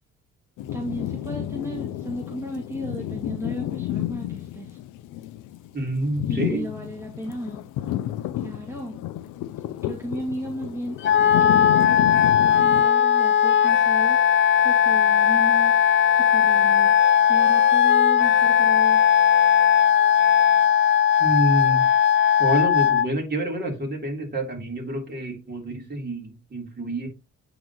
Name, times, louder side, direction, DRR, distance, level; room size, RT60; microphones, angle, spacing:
sound 1, 0.6-12.8, left 13 dB, 85° left, 0.5 m, -31 dB
voice 1, 0.7-4.8 6.3-7.6 8.4-9.0 9.8-11.0 11.4-14.2 14.6-19.0, equal, 10° right, 2.0 m, -35 dB
voice 2, 5.7-6.7 21.2-21.8 22.4-27.1, right 1 dB, 35° right, 3.5 m, -27 dB
Wind instrument woodwind instrument, 11.0-23.1, left 8 dB, 40° left, 0.5 m, -18 dB
9.1 x 3.9 x 3.0 m
cardioid pair, 90°, 30 cm